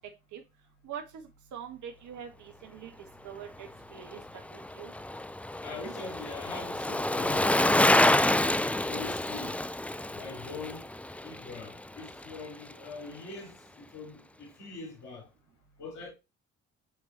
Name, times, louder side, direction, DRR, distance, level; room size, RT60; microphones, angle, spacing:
voice 1, 0.8-2.9 3.2-4.9, right 8 dB, 65° right, 1.5 m, -44 dB
Bicycle, 4.0-12.4 12.7-12.8, left 1 dB, 5° left, 0.4 m, -28 dB
voice 2, 5.6-7.4 8.9-9.5 10.1-10.8 11.2-13.6 13.9-15.3 15.8-16.1, left 4 dB, 65° left, 4.4 m, -42 dB
9.4 x 4.4 x 2.9 m
hypercardioid pair, 55°, 32 cm